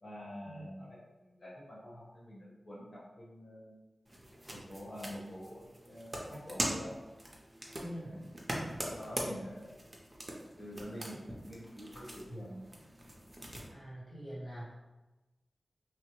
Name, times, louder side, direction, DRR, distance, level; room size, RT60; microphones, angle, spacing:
voice 1, 0.0-3.8 4.5-6.9 8.0-8.3 8.8-9.8 10.6-12.6, equal, 60° left, -6 dB, 1.2 m, -46 dB
sound 1, 4.1-13.7, equal, 20° right, 0.6 m, -42 dB
voice 2, 7.8-8.1 13.7-14.7, equal, 90° left, -10 dB, 0.8 m, -44 dB
3.1 x 2.1 x 3.1 m, 1.1 s
wide cardioid pair, 60°, 0 cm